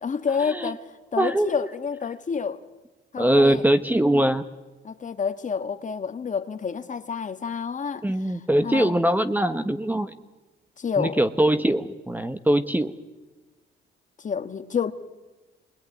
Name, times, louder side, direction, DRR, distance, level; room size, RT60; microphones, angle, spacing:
voice 1, 0.0-2.6 3.1-3.6 4.8-9.0 10.8-11.2 14.2-14.9, left 6 dB, 40° left, 1.5 m, -29 dB
voice 2, 1.2-1.7 3.2-4.5 8.0-10.1 11.0-12.9, right 1 dB, 10° right, 1.1 m, -22 dB
26.0 x 21.0 x 9.6 m
cardioid pair, 90°, 20 cm